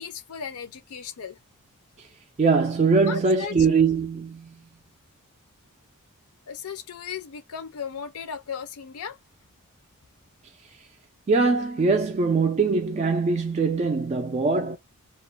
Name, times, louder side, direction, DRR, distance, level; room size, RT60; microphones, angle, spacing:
voice 1, 0.0-1.4 3.0-3.6 6.5-9.2, left 7 dB, 70° left, 0.5 m, -36 dB
voice 2, 2.4-4.5 11.3-14.8, right 4 dB, 30° right, 0.3 m, -22 dB
2.4 x 2.1 x 3.0 m
head